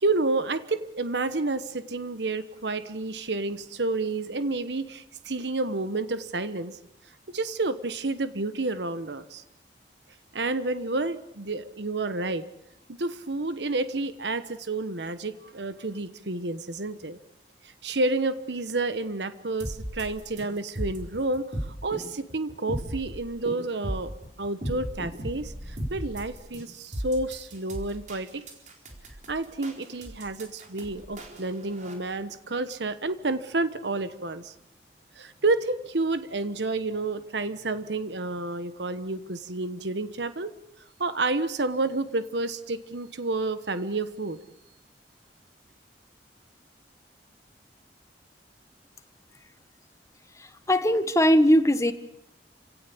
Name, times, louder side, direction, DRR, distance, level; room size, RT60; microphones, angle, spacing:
voice 1, 0.0-6.8 7.3-9.4 10.3-12.5 12.9-17.2 17.8-24.1 24.4-28.4 29.3-34.5 35.2-40.5 41.0-44.4, right 2 dB, 80° right, 12 dB, 1.3 m, -30 dB
sound 1, 19.6-31.9, equal, 45° right, 4.2 m, -36 dB
voice 2, 50.4-51.9, equal, 20° left, 10 dB, 1.4 m, -20 dB
28.5 x 17.0 x 8.6 m, 0.82 s
head